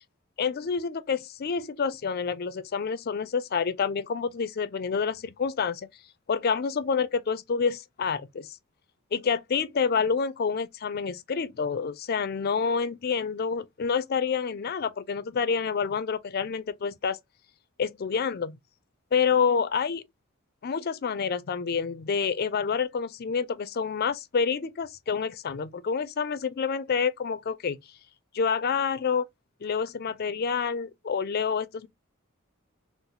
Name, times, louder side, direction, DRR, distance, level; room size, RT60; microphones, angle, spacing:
voice 1, 0.4-5.9 6.3-8.6 9.1-17.2 17.8-18.6 19.1-20.1 20.6-27.8 28.3-29.3 29.6-31.9, left 6 dB, 45° left, 0.4 m, -28 dB
4.0 x 2.0 x 2.7 m
head